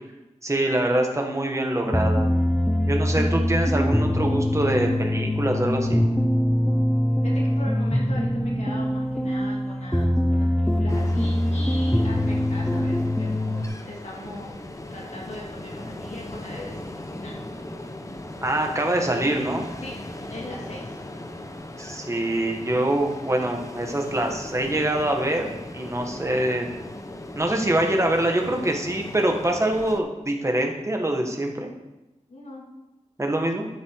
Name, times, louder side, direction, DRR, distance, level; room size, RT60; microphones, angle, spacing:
voice 1, 0.4-2.3 2.9-6.0 18.4-19.7 21.8-26.7 27.3-31.7 33.2-33.7, right 1 dB, 25° right, 2 dB, 1.8 m, -24 dB
sound 1, 1.8-13.6, equal, 5° left, 1.0 m, -23 dB
voice 2, 7.2-14.6 14.9-17.4 19.8-20.0 20.3-21.0 32.3-32.6, left 1 dB, 65° left, -3 dB, 3.0 m, -40 dB
Ocean, 10.9-30.0, left 1 dB, 25° left, 0.9 m, -38 dB
12.5 x 7.2 x 4.9 m, 1.0 s
wide cardioid pair, 75°, 12 cm